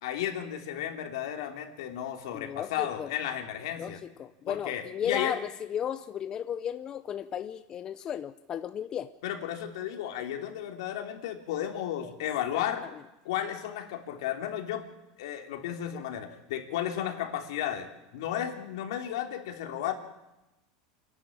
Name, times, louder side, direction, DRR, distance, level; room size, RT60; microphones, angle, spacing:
voice 1, 0.0-4.0 4.5-5.4 9.2-12.8 13.2-14.8 15.2-19.9, left 10 dB, 80° left, 4 dB, 3.2 m, -33 dB
voice 2, 2.3-3.1 3.8-9.1 12.0-12.1 12.5-12.6, left 9 dB, 30° left, 11 dB, 0.7 m, -35 dB
27.0 x 11.5 x 8.8 m, 0.98 s
supercardioid pair, 145°, 3 cm